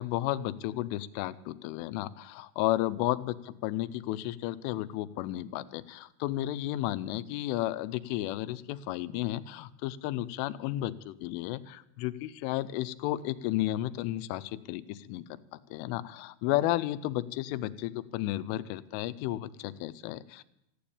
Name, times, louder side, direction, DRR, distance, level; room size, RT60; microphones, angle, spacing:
voice 1, 0.0-15.2 15.7-20.4, left 15 dB, 80° left, 13 dB, 3.1 m, -33 dB
15.0 x 10.0 x 8.6 m, 0.83 s
omnidirectional pair, 5.9 m